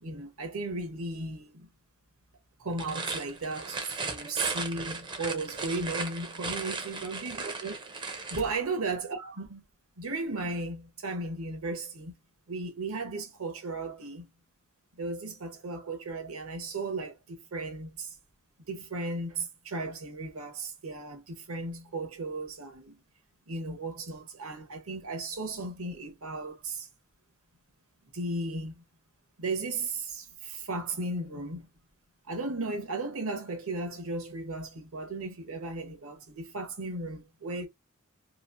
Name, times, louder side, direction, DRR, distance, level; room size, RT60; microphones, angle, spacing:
voice 1, 0.0-1.7 2.6-9.6 10.0-12.1 12.5-14.3 15.0-18.1 18.7-23.0 23.5-26.9 28.1-28.8 29.4-31.7 32.3-37.7, right 3 dB, 70° right, 0.9 m, -35 dB
sound 1, 2.7-8.5, right 4 dB, 20° right, 0.4 m, -36 dB
3.0 x 2.4 x 2.4 m
head